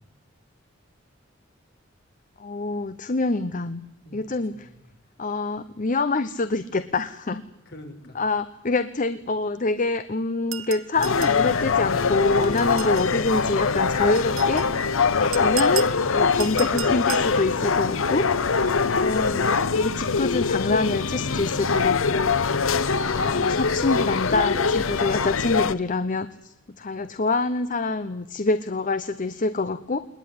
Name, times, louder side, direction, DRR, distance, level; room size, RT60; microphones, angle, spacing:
voice 1, 2.4-3.8 4.1-4.7 5.2-7.4 8.1-18.5 19.0-22.4 23.0-30.0, left 3 dB, 40° left, 12 dB, 0.9 m, -26 dB
voice 2, 4.0-4.8 7.5-8.2, equal, 55° left, 4 dB, 4.8 m, -47 dB
sound 1, 10.5-11.4 12.6-13.1 14.1-14.7 15.3-16.0 16.4-17.3, right 14 dB, 80° right, 0.9 m, -34 dB
sound 2, 11.0-25.7, left 5 dB, 85° left, 0.9 m, -23 dB
20.5 x 20.5 x 9.6 m, 0.88 s
head